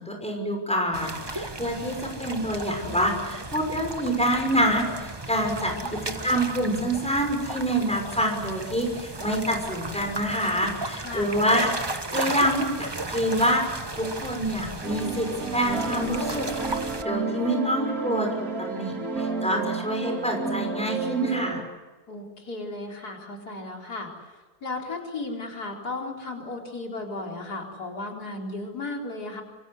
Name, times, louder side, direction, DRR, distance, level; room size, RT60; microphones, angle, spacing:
voice 1, 0.0-5.7 6.2-16.5 16.8-21.6, equal, 5° left, 3 dB, 6.0 m, -26 dB
sound 1, 0.9-17.0, right 2 dB, 15° right, 1.2 m, -35 dB
voice 2, 5.5-5.9 11.0-11.3 22.1-29.4, left 2 dB, 85° left, 0 dB, 4.8 m, -35 dB
sound 2, 14.8-21.6, right 4 dB, 65° right, 3.2 m, -31 dB
26.0 x 25.0 x 8.1 m, 1.3 s
omnidirectional pair, 1.6 m